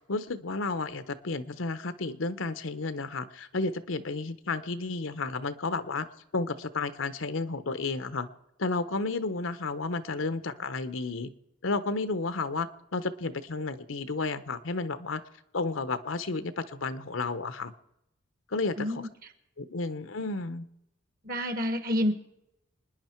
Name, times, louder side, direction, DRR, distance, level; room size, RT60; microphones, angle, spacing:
voice 1, 0.0-6.1 6.3-8.3 8.6-11.3 11.6-15.2 15.5-17.7 18.5-18.9 19.6-20.7, left 3 dB, 80° left, 12 dB, 0.9 m, -32 dB
voice 2, 18.8-19.1 21.2-22.1, left 1 dB, 50° right, 9 dB, 1.5 m, -28 dB
26.5 x 10.0 x 4.5 m, 0.83 s
head